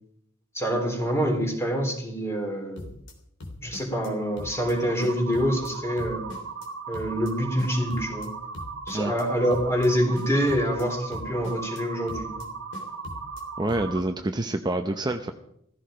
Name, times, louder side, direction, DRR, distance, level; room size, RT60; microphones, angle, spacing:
voice 1, 0.5-2.9 3.6-6.3 6.9-8.3 8.9-12.5, equal, 15° left, 2 dB, 3.6 m, -26 dB
sound 1, 2.8-3.1 3.4-4.1 4.4-4.7 5.0-5.7 6.0-6.7 6.9-7.3 7.6-8.3 8.5-9.2 9.5-9.9 10.1-10.8 11.1-11.8 12.1-12.5 12.7-13.4 13.7-14.0, left 2 dB, 65° left, 3.2 m, -41 dB
sound 2, 4.1-14.0, right 4 dB, 60° right, 1.4 m, -37 dB
voice 2, 13.6-15.3, right 2 dB, 20° right, 5 dB, 0.7 m, -27 dB
16.0 x 15.0 x 5.1 m, 0.71 s
head